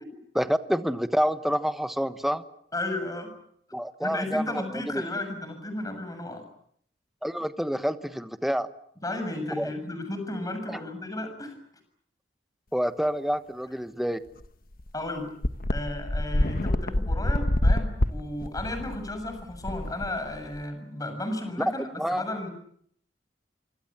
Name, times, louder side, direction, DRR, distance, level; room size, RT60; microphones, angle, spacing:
voice 1, 0.3-2.4 3.7-5.0 7.2-8.7 9.6-9.7 10.7-10.8 12.7-14.2 22.0-22.2, equal, ahead, 10 dB, 1.2 m, -28 dB
voice 2, 2.7-3.3 4.0-6.4 9.0-11.5 14.9-15.3 15.7-22.5, left 1 dB, 20° left, 7 dB, 6.9 m, -34 dB
sound 1, 14.4-14.5 14.8-14.9 15.4-20.6, left 1 dB, 55° left, 1.2 m, -26 dB
26.5 x 25.5 x 7.4 m, 0.66 s
head